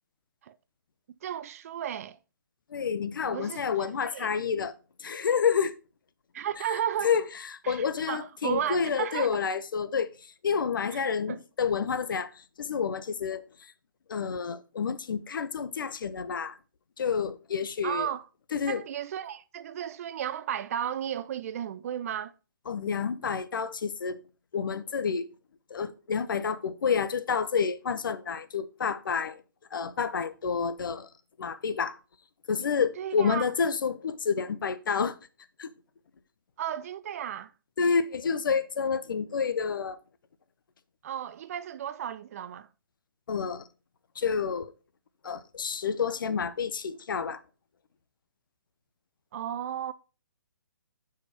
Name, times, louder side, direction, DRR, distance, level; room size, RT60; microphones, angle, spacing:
voice 1, 1.2-2.2 3.3-4.3 6.3-7.1 7.6-9.3 10.9-11.0 11.3-11.4 17.8-18.2 18.7-22.3 33.0-33.4 36.6-37.5 41.0-42.7 49.3-49.9, right 10 dB, 45° right, 0.4 m, -34 dB
voice 2, 2.7-4.7 5.0-5.7 6.7-13.7 14.1-16.6 17.0-18.1 18.5-18.8 22.7-24.2 24.5-25.3 25.7-29.4 29.7-31.1 31.4-32.0 32.5-35.2 35.6-35.7 37.8-40.0 43.3-43.7 44.2-44.7 45.2-47.4, left 6 dB, 70° left, 0.6 m, -29 dB
5.9 x 4.9 x 4.0 m
hypercardioid pair, 145°, 11 cm